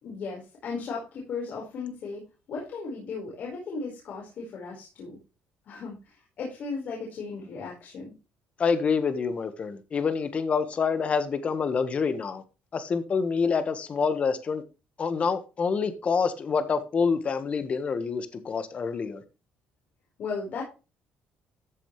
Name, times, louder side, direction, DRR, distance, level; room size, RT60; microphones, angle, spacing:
voice 1, 0.0-5.2 5.7-8.1 20.2-20.6, left 4 dB, 60° left, 4.9 m, -36 dB
voice 2, 8.6-12.4 12.7-14.6 15.0-19.2, left 5 dB, 40° left, 1.5 m, -27 dB
14.0 x 7.3 x 3.3 m
cardioid pair, 120°, 3 cm